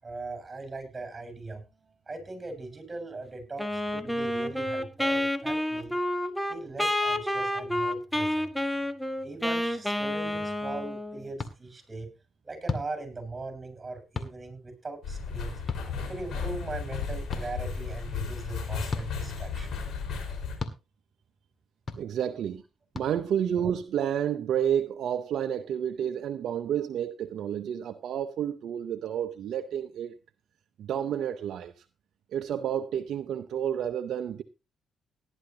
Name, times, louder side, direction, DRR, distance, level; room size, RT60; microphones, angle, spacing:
voice 1, 0.0-1.6 2.1-6.0 6.5-8.5 9.2-12.1 12.4-15.5 16.1-19.7 26.7-26.9, right 3 dB, 25° right, 7.1 m, -40 dB
Wind instrument woodwind instrument, 3.6-11.3, left 1 dB, 5° left, 1.5 m, -29 dB
sound 1, 11.4-11.5 12.6-12.9 14.1-14.3 15.7-15.8 17.3-17.4 18.9-19.1 20.6-20.8 21.9-22.0 22.9-23.1, left 3 dB, 45° left, 1.9 m, -33 dB
sound 2, 15.0-20.6, left 5 dB, 65° left, 4.7 m, -34 dB
voice 2, 21.9-22.6 22.9-30.2 30.8-31.8 32.3-34.4, right 9 dB, 70° right, 0.7 m, -30 dB
18.0 x 11.0 x 2.9 m
supercardioid pair, 60°, 0 cm